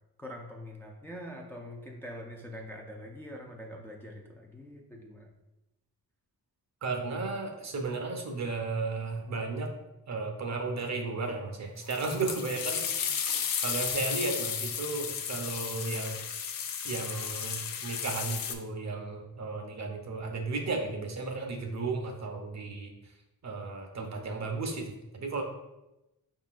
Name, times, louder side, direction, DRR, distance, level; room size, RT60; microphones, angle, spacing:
voice 1, 0.2-5.3, equal, 5° left, 0 dB, 0.4 m, -44 dB
voice 2, 6.8-9.7 10.1-12.8 13.6-16.1 16.8-22.9 23.4-25.4, right 3 dB, 45° right, 3 dB, 0.7 m, -34 dB
sound 1, 11.9-18.6, left 7 dB, 65° left, 0.5 m, -34 dB
5.0 x 3.7 x 2.4 m, 0.96 s
wide cardioid pair, 120°, 38 cm